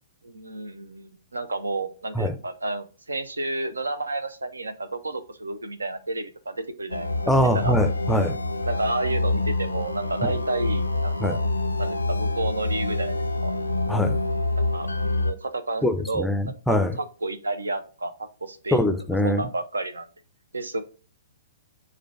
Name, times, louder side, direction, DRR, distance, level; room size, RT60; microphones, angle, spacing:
voice 1, 0.2-7.1 7.5-7.7 8.6-11.4 11.8-13.5 14.6-16.3 16.7-18.9 19.2-20.1 20.5-20.8, right 2 dB, 80° right, 0.5 m, -31 dB
sound 1, 6.9-15.3, left 2 dB, 90° left, 0.4 m, -26 dB
voice 2, 7.3-8.4 10.2-10.3 11.2-11.4 13.9-14.2 15.8-17.0 18.7-19.4, equal, 5° left, 0.4 m, -23 dB
4.9 x 2.2 x 4.3 m
figure-of-eight pair, 115°, 0 cm